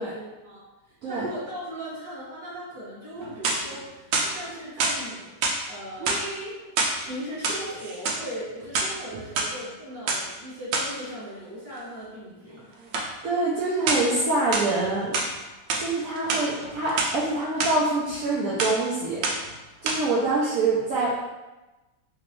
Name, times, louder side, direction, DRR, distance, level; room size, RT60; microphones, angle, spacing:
voice 1, 0.0-5.3 5.7-6.2 7.0-12.7, equal, 10° left, -12 dB, 1.2 m, -38 dB
sound 1, 3.2-3.8 4.1-5.0 5.4-5.6 6.0-7.0 7.3-8.2 8.6-9.5 10.1-10.2 10.7-10.9 12.9-13.1 13.9-14.2 14.5-15.3 15.7-15.9 16.2-17.1 17.6-17.7 18.1-18.3 18.6-18.9 19.2-19.5 19.9-20.0, right 3 dB, 90° right, 1.3 m, -26 dB
voice 2, 13.2-15.2 15.8-19.2 19.8-21.1, right 2 dB, 65° right, -6 dB, 0.9 m, -25 dB
3.4 x 3.0 x 3.0 m, 1.1 s
omnidirectional pair, 2.0 m